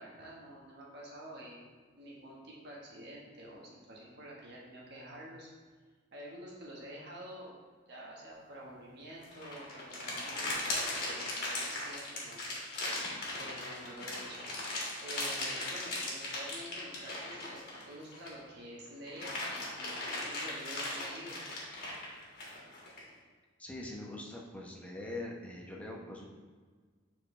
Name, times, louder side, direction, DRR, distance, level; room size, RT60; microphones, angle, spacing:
voice 1, 0.0-1.6 2.0-5.5 6.1-7.6 7.9-12.9 13.4-14.5 15.0-21.4, right 1 dB, 60° right, -4 dB, 1.4 m, -48 dB
sound 1, 9.2-18.5 18.9-23.0, left 2 dB, 55° left, 1.8 m, -38 dB
voice 2, 23.6-26.3, left 2 dB, 10° left, -2 dB, 0.9 m, -43 dB
7.6 x 4.3 x 3.3 m, 1.5 s
head